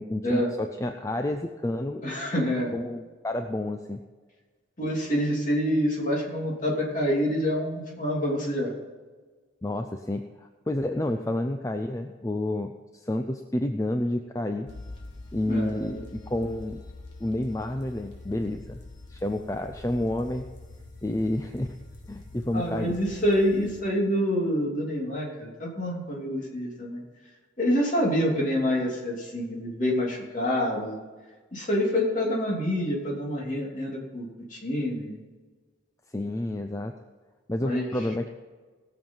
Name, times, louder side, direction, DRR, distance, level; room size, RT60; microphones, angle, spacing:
voice 1, 0.0-2.0 2.7-4.0 9.6-14.7 15.3-16.8 17.2-18.8 19.1-20.5 21.0-21.7 22.1-23.0 36.1-36.9 37.5-38.3, left 1 dB, 15° left, 6 dB, 0.5 m, -30 dB
voice 2, 2.0-2.7 4.8-8.7 15.5-16.0 22.5-27.0 27.6-31.0 31.5-35.2 37.6-37.8, equal, 40° left, -2 dB, 2.9 m, -27 dB
sound 1, 14.7-23.8, left 2 dB, 65° left, 2.3 m, -45 dB
18.0 x 7.2 x 5.5 m, 1.4 s
head